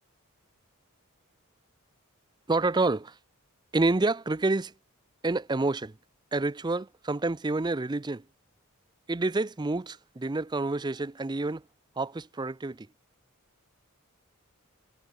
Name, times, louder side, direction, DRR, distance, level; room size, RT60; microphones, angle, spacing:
voice 1, 2.5-3.2 3.7-4.7 5.2-5.9 6.3-8.2 9.1-11.6 12.0-12.9, right 2 dB, 20° right, 0.4 m, -28 dB
head